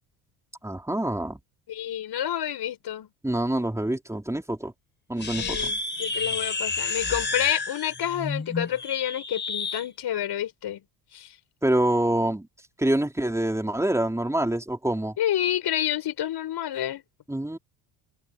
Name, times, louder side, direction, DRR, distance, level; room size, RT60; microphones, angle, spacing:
voice 1, 0.6-1.4 3.2-4.7 5.1-5.7 11.6-12.5 12.8-15.1 17.3-17.6, right 1 dB, 5° right, 4.0 m, -26 dB
voice 2, 1.7-3.1 5.3-10.8 11.1-11.3 15.2-17.0, left 11 dB, 55° left, 6.0 m, -29 dB
sound 1, 5.2-9.9, left 3 dB, 20° left, 5.5 m, -30 dB
supercardioid pair, 90°, 47 cm